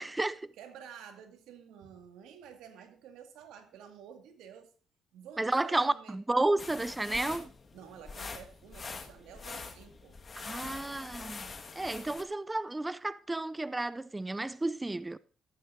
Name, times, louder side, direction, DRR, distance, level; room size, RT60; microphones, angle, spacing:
voice 1, 0.0-0.5 5.4-7.5 10.4-11.5 11.8-15.2, right 2 dB, 15° right, 0.4 m, -32 dB
voice 2, 0.5-4.7 5.1-6.2 7.7-10.2, right 8 dB, 90° right, 2.1 m, -51 dB
sound 1, 6.6-12.2, left 4 dB, 40° left, 1.8 m, -44 dB
14.0 x 11.0 x 2.7 m
cardioid pair, 90°, 0 cm